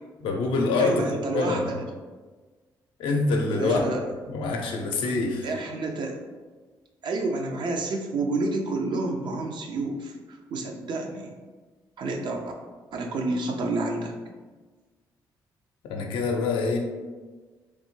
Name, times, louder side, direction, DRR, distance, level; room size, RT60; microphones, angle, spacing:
voice 1, 0.2-1.0 1.3-1.7 3.0-3.8 4.3-5.5 15.9-16.8, left 3 dB, 80° left, 1 dB, 0.5 m, -25 dB
voice 2, 0.8-1.8 3.5-4.1 5.4-6.2 7.0-11.3 12.0-12.4 12.9-14.1, right 2 dB, 65° right, 3 dB, 0.5 m, -29 dB
3.2 x 2.1 x 3.1 m, 1.4 s
supercardioid pair, 70°, 9 cm